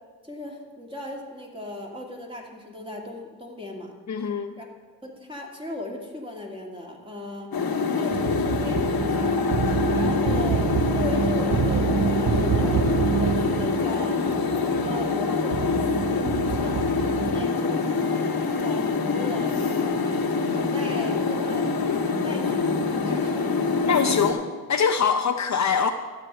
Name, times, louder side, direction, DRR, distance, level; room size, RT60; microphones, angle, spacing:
voice 1, 0.2-3.9 4.6-4.7 5.0-7.5 8.0-9.5 9.9-14.2 14.7-16.4 16.6-21.7 22.1-23.5, left 1 dB, 15° right, -1 dB, 2.3 m, -37 dB
voice 2, 4.1-4.6 23.9-24.4 24.7-25.9, left 6 dB, 45° left, 6 dB, 0.6 m, -23 dB
sound 1, 7.5-24.3, left 4 dB, 70° left, 1.4 m, -25 dB
sound 2, 8.1-17.5, right 7 dB, 40° right, 0.5 m, -27 dB
12.5 x 8.0 x 5.6 m, 1.5 s
cardioid pair, 80°, 38 cm